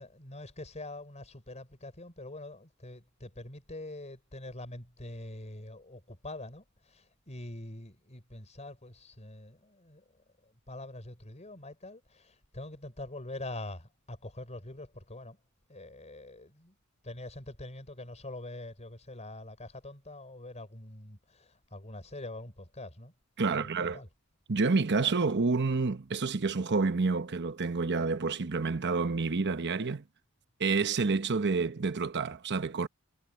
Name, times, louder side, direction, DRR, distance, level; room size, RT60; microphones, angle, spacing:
voice 1, 0.0-10.0 10.4-15.4 15.7-16.7 17.0-23.1 23.5-24.1, left 2 dB, 30° left, 4.9 m, -44 dB
voice 2, 23.4-24.0 24.5-30.0 30.6-32.9, right 4 dB, 50° right, 0.9 m, -29 dB
head